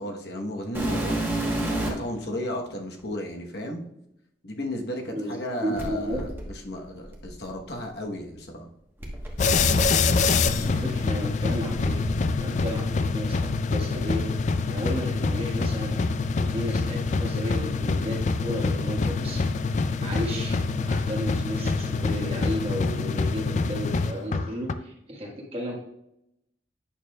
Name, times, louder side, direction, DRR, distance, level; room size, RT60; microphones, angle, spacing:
voice 1, 0.0-3.8 4.4-8.7 10.4-10.8, left 1 dB, 65° left, 1 dB, 1.1 m, -34 dB
sound 1, 0.7-2.1 3.0-3.1 5.8-7.8 9.0-12.7 13.0-14.1 14.8-15.0 15.6-15.7 16.4-17.5 17.7-18.2 19.6-19.7, right 1 dB, 10° right, 1.1 m, -33 dB
voice 2, 5.1-6.2 10.5-11.9 12.4-12.8 13.1-14.2 14.7-16.0 16.4-19.4 20.0-20.6 20.8-25.8, equal, 30° right, -1 dB, 1.5 m, -33 dB
sound 2, 9.4-24.7, left 4 dB, 40° left, 0.3 m, -25 dB
9.0 x 6.5 x 2.3 m, 0.80 s
head